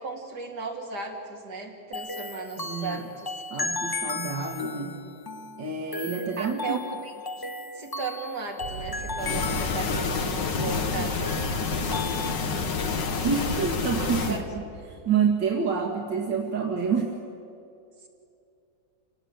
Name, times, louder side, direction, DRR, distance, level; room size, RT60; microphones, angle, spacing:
voice 1, 0.0-3.6 4.7-4.8 6.4-11.4 12.4-13.2 14.2-14.5 18.0-18.1, right 4 dB, 65° right, 0 dB, 3.6 m, -37 dB
sound 1, 1.9-12.6, left 3 dB, 25° left, 0.5 m, -36 dB
voice 2, 2.6-3.0 3.5-4.9 5.6-6.8 10.6-11.1 13.2-14.6 15.1-17.1, right 6 dB, 85° right, 0 dB, 2.5 m, -28 dB
Boom, 8.6-15.1, right 5 dB, 45° right, 1.1 m, -43 dB
sound 2, 9.2-14.4, left 5 dB, 90° left, 2.2 m, -28 dB
28.0 x 18.5 x 9.0 m, 2.6 s
omnidirectional pair, 1.9 m